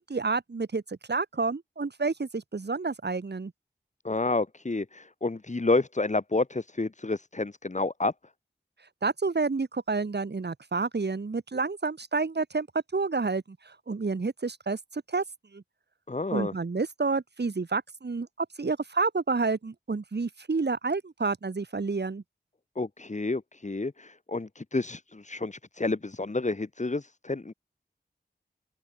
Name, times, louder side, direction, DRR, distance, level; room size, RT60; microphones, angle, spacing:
voice 1, 0.0-3.5 9.0-12.7 12.9-15.2 15.5-15.6 16.3-22.2, right 4 dB, 70° right, 4.6 m, -29 dB
voice 2, 4.0-8.1 16.1-16.5 22.8-27.5, left 3 dB, 40° left, 2.5 m, -29 dB
open air
wide cardioid pair, 60°, 18 cm